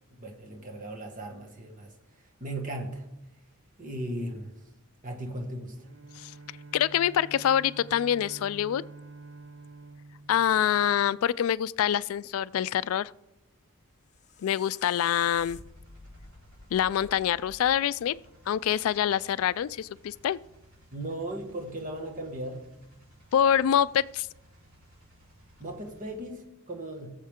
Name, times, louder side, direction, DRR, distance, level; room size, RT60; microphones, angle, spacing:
voice 1, 0.1-1.9 2.4-3.1 3.8-4.5 5.0-5.9 20.9-22.7 25.6-27.1, right 1 dB, 40° right, 1 dB, 1.8 m, -37 dB
Bowed string instrument, 5.8-11.4, right 3 dB, 65° right, 0.6 m, -48 dB
voice 2, 6.7-8.8 10.3-13.1 14.4-15.6 16.7-18.1 18.5-20.4 23.3-24.3, left 9 dB, 75° left, 18 dB, 0.3 m, -25 dB
sound 1, 13.8-18.9, left 4 dB, 35° left, 0.7 m, -51 dB
sound 2, 15.6-26.2, right 1 dB, 80° right, 4.3 m, -59 dB
20.0 x 7.2 x 3.7 m, 0.93 s
head